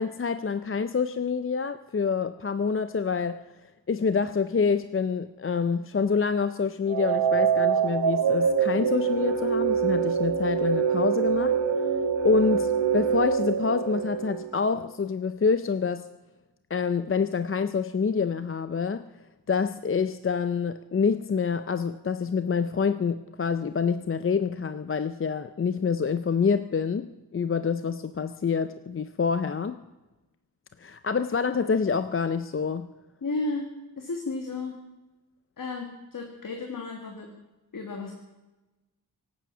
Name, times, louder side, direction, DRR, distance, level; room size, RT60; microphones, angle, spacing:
voice 1, 0.0-3.4 3.9-16.0 16.7-19.0 19.5-29.8 30.8-32.9, left 5 dB, 35° left, 11 dB, 0.5 m, -27 dB
sound 1, 6.9-14.8, right 7 dB, 80° right, 1.5 m, -25 dB
voice 2, 33.2-33.7 34.0-34.8 35.6-37.3 37.7-38.1, left 3 dB, 50° left, 3 dB, 1.8 m, -33 dB
25.0 x 8.7 x 6.1 m, 1.1 s
wide cardioid pair, 130°, 41 cm